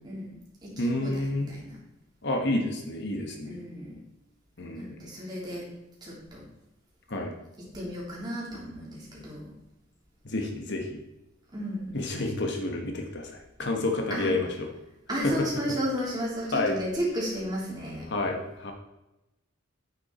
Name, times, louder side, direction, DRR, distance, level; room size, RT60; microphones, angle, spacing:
voice 1, 0.0-0.4 0.6-1.8 3.5-3.9 4.7-5.7 6.0-6.4 7.7-9.5 11.5-12.0 14.1-14.3 15.1-18.1, equal, 20° right, -5 dB, 3.7 m, -33 dB
voice 2, 0.8-1.5 2.2-3.6 4.6-5.1 7.1-7.3 10.2-11.0 11.9-14.7 15.2-15.3 16.5-16.8 18.1-18.7, left 2 dB, 55° left, 3 dB, 1.3 m, -30 dB
8.9 x 8.5 x 4.3 m, 0.94 s
head